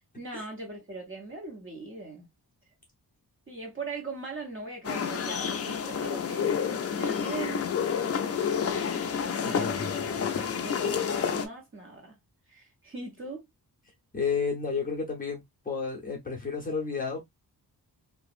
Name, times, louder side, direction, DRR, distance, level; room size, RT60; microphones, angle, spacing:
voice 1, 0.2-2.3 3.5-6.5 7.0-7.7 8.0-8.3 9.4-12.2 12.5-13.5, right 3 dB, 30° right, 1.1 m, -40 dB
sound 1, 4.8-11.5, left 7 dB, 40° left, 0.4 m, -29 dB
voice 2, 9.4-9.9 10.3-10.4 14.1-17.2, left 5 dB, 20° left, 0.8 m, -31 dB
2.9 x 2.4 x 2.4 m
wide cardioid pair, 175°, 39 cm